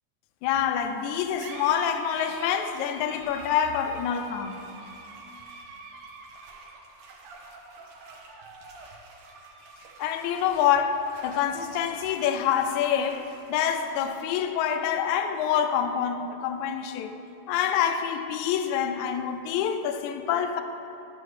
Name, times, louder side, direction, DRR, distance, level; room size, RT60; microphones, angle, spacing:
voice 1, 0.4-4.6 10.0-17.1 17.5-20.6, left 8 dB, 80° left, 1.8 m, -26 dB
sound 1, 0.9-17.9, right 3 dB, 85° right, 2.5 m, -47 dB
12.5 x 6.7 x 3.2 m
omnidirectional pair, 3.5 m